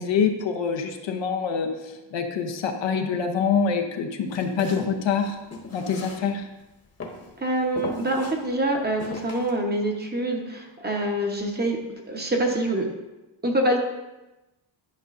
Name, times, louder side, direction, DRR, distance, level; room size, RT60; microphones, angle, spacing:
voice 1, 0.0-1.7 2.1-5.3 5.7-6.4, left 6 dB, 70° left, 5 dB, 0.9 m, -25 dB
Walk footsteps, 4.3-6.6 7.0-7.3 7.8-8.3 9.0-9.5, left 3 dB, 35° left, 1.2 m, -37 dB
voice 2, 7.4-11.8 12.1-12.9 13.4-13.8, right 1 dB, 20° right, 1 dB, 1.0 m, -25 dB
11.0 x 5.1 x 2.6 m, 1.0 s
wide cardioid pair, 130°, 46 cm